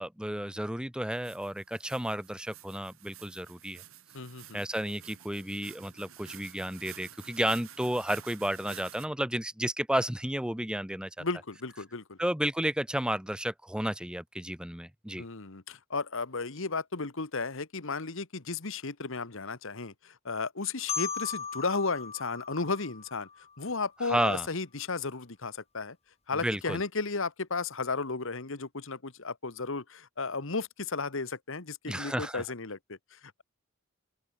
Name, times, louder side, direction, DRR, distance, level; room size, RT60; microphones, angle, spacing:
voice 1, 0.0-3.8 4.5-11.2 12.2-15.2 24.0-24.5 26.3-26.8 31.9-32.4, right 1 dB, 5° right, 0.9 m, -32 dB
sound 1, 1.1-9.1, right 10 dB, 85° right, 4.1 m, -50 dB
voice 2, 4.1-4.6 11.2-12.2 15.2-23.3 23.6-26.0 26.3-33.4, left 4 dB, 70° left, 1.6 m, -34 dB
Marimba xylophone, 20.9-23.7, left 6 dB, 30° left, 3.0 m, -38 dB
open air
head